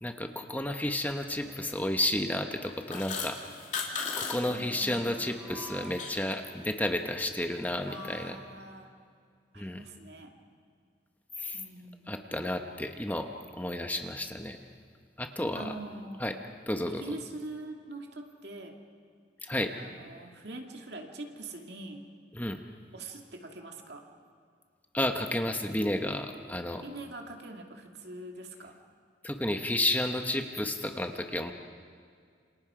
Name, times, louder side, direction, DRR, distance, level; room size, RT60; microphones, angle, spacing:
voice 1, 0.0-3.4 4.2-8.4 9.6-9.8 11.4-11.6 12.1-14.6 15.2-15.7 16.2-16.3 16.7-17.1 19.4-19.7 22.3-22.6 24.9-26.8 29.2-31.5, left 1 dB, 10° left, 5 dB, 1.1 m, -32 dB
sound 1, 1.3-2.1 3.2-6.8 7.2-7.3 8.4-8.5, right 1 dB, 15° right, 2.9 m, -50 dB
sound 2, 2.6-4.4 4.6-5.0 5.4-6.3, left 5 dB, 45° left, 2.7 m, -36 dB
voice 2, 4.5-5.3 7.9-8.9 9.5-10.3 11.5-12.4 15.5-16.3 16.9-18.8 19.8-22.0 22.9-24.0 26.8-28.8, right 2 dB, 70° right, 2 dB, 2.5 m, -43 dB
28.0 x 26.5 x 5.0 m, 2.1 s
head